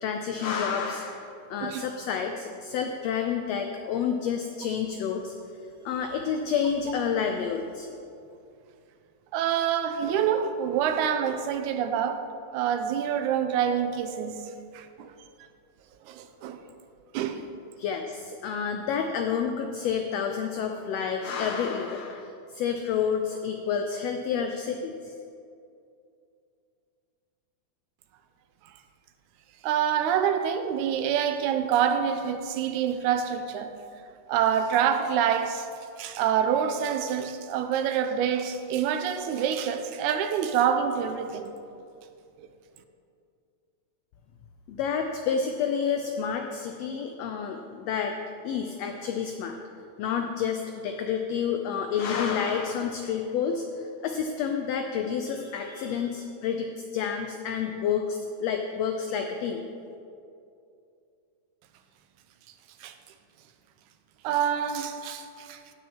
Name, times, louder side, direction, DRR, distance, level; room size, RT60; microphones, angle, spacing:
voice 1, 0.0-5.3 5.8-7.9 17.8-25.1 44.7-48.1 48.4-49.6 50.0-59.6, left 7 dB, 90° left, 4 dB, 1.4 m, -29 dB
voice 2, 9.3-12.2 12.5-14.4 14.7-15.1 16.1-16.6 17.1-17.4 29.6-33.7 34.3-35.7 36.0-41.5 62.8-62.9 64.2-65.6, right 8 dB, 80° right, 8 dB, 1.9 m, -26 dB
17.0 x 6.2 x 2.9 m, 2.5 s
omnidirectional pair, 3.5 m